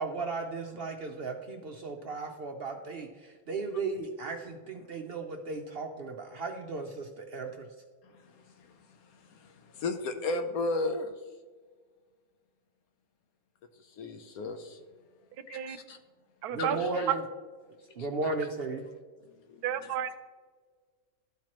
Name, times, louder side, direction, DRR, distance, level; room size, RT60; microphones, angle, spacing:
voice 1, 0.0-7.7 16.5-17.2 18.0-18.8, right 3 dB, 60° right, 3 dB, 0.6 m, -35 dB
voice 2, 8.0-11.1 13.8-14.8 15.5-16.0 16.6-17.1 18.0-18.3 19.2-20.0, left 3 dB, 75° left, 7 dB, 1.1 m, -36 dB
voice 3, 16.4-16.8 17.1-17.2 19.6-20.2, right 10 dB, 90° right, 11 dB, 1.1 m, -31 dB
12.5 x 4.5 x 2.9 m, 1.5 s
omnidirectional pair, 1.6 m